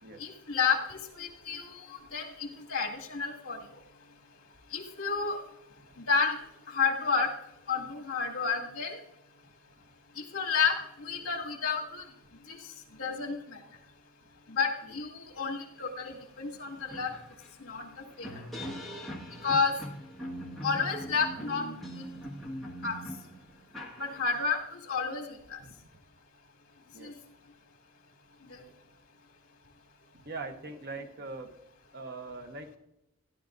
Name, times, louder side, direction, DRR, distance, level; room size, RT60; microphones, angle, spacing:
voice 1, 0.2-3.6 4.7-5.4 6.1-6.4 6.7-7.3 7.7-9.0 10.2-12.0 12.5-12.7 13.0-13.6 14.5-17.1 17.6-17.9 18.2-18.4 19.4-19.7 20.6-21.6 21.9-22.1 22.8-23.0 24.0-25.6 27.0-27.1 28.5-28.6, left 5 dB, 65° left, 1 dB, 2.1 m, -31 dB
sound 1, 16.1-16.2 16.5-24.6, equal, ahead, 1.6 m, -41 dB
voice 2, 30.2-31.5 31.9-32.7, right 3 dB, 45° right, 6 dB, 0.9 m, -41 dB
15.5 x 11.0 x 2.6 m, 0.84 s
head